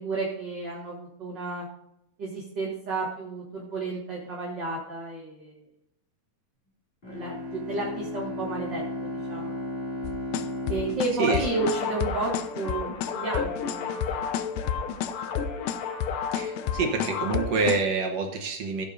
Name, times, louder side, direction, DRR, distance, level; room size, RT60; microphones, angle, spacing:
voice 1, 0.0-1.7 2.2-5.6 7.1-9.5 10.7-14.2, right 3 dB, 40° right, -4 dB, 2.1 m, -32 dB
Bowed string instrument, 7.0-12.6, left 1 dB, 20° left, 2.1 m, -35 dB
sound 1, 10.0-17.8, left 9 dB, 85° left, 1.5 m, -30 dB
sound 2, 11.4-17.8, left 6 dB, 65° left, 1.4 m, -33 dB
voice 2, 16.3-18.9, right 4 dB, 65° right, 2 dB, 1.9 m, -27 dB
16.0 x 8.5 x 2.6 m, 0.80 s
omnidirectional pair, 3.7 m